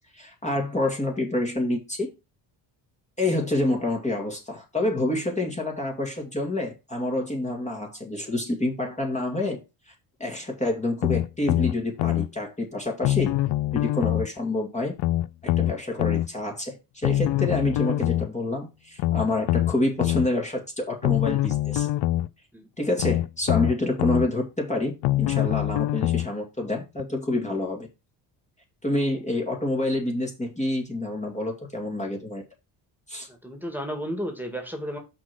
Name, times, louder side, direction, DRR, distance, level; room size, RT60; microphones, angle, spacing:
voice 1, 0.1-2.1 3.2-9.6 9.9-10.0 10.2-13.3 13.7-14.9 15.4-21.9 22.8-27.9 28.8-32.4 33.1-33.3, left 2 dB, 15° left, 0 dB, 2.0 m, -28 dB
sound 1, 11.0-12.3 13.0-14.3 15.0-16.3 17.0-18.3 19.0-20.3 21.0-22.3 23.0-24.3 25.0-26.3 27.0-27.1, left 15 dB, 60° left, 0.5 m, -24 dB
voice 2, 33.3-35.0, equal, 5° right, 4 dB, 2.1 m, -33 dB
6.0 x 3.9 x 6.0 m, 0.27 s
supercardioid pair, 75°, 46 cm